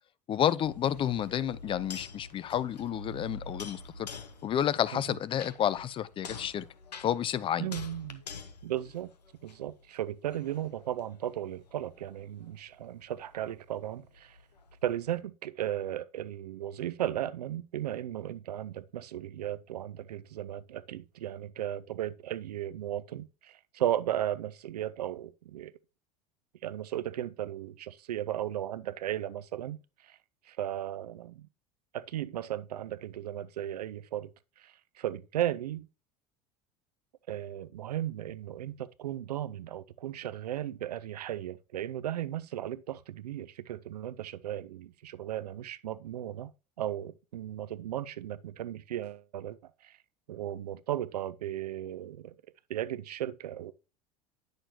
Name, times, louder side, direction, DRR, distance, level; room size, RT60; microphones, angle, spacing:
voice 1, 0.3-4.1 4.4-6.7 7.0-7.8, left 10 dB, 25° left, 0.4 m, -30 dB
sound 1, 0.6-9.8 10.3-15.2, left 4 dB, 75° left, 0.9 m, -47 dB
voice 2, 7.6-8.2 8.6-9.1 9.4-14.4 14.8-25.7 26.6-30.2 30.5-31.5 31.9-34.3 34.6-35.9 37.3-46.5 46.8-50.0 50.3-52.3 52.7-53.7, right 12 dB, 70° right, 0.5 m, -36 dB
9.9 x 6.4 x 2.9 m
figure-of-eight pair, 70°, 21 cm